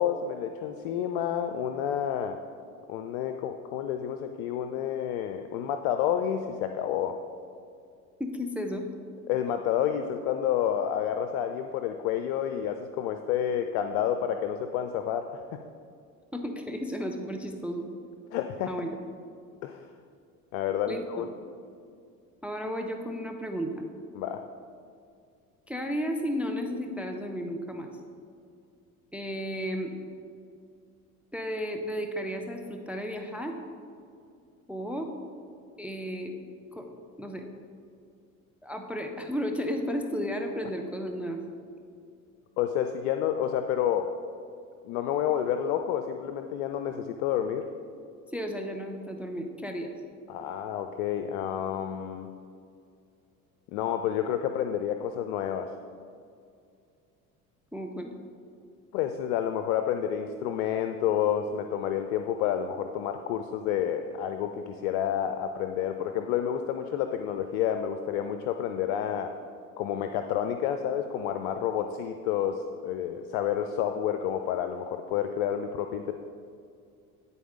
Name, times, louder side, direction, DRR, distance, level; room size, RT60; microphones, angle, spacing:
voice 1, 0.0-2.4 2.9-7.2 9.3-15.6 18.3-18.7 19.6-19.8 20.5-21.3 24.1-24.4 42.6-44.1 44.8-47.7 50.3-52.3 53.7-55.7 58.9-69.3 69.8-76.1, left 9 dB, 65° left, 7 dB, 0.5 m, -29 dB
voice 2, 8.2-8.8 16.3-17.9 18.7-19.0 20.9-21.3 22.4-23.8 25.7-27.9 29.1-29.9 31.3-33.6 34.7-35.1 35.8-36.3 36.7-36.9 37.2-37.4 38.6-41.4 48.3-49.9 57.7-58.1, equal, 5° right, 4 dB, 0.5 m, -33 dB
10.0 x 4.0 x 3.7 m, 2.3 s
hypercardioid pair, 65°, 43 cm